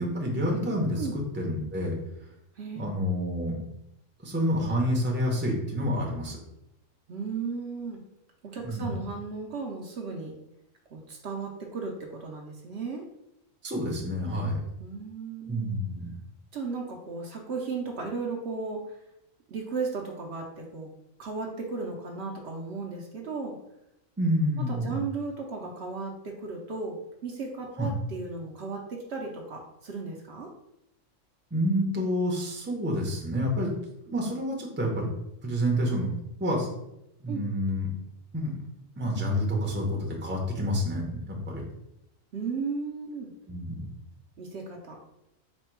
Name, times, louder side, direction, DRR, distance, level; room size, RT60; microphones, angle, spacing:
voice 1, 0.0-2.0 2.8-3.6 4.2-6.4 8.6-9.0 13.6-14.6 15.5-16.1 24.2-25.0 27.8-27.9 31.5-33.7 34.1-35.1 35.4-36.1 36.4-36.7 37.2-37.9 38.3-38.6 39.0-41.6 43.5-43.8, equal, 10° right, -1 dB, 0.6 m, -28 dB
voice 2, 2.6-2.9 7.1-8.0 8.4-10.4 10.9-13.1 14.8-15.7 16.5-18.8 19.5-20.9 21.2-23.5 24.7-27.0 27.2-30.5 37.3-37.4 42.3-43.3 44.4-45.0, right 4 dB, 60° right, 0 dB, 0.9 m, -35 dB
4.3 x 2.2 x 4.5 m, 0.85 s
omnidirectional pair, 1.3 m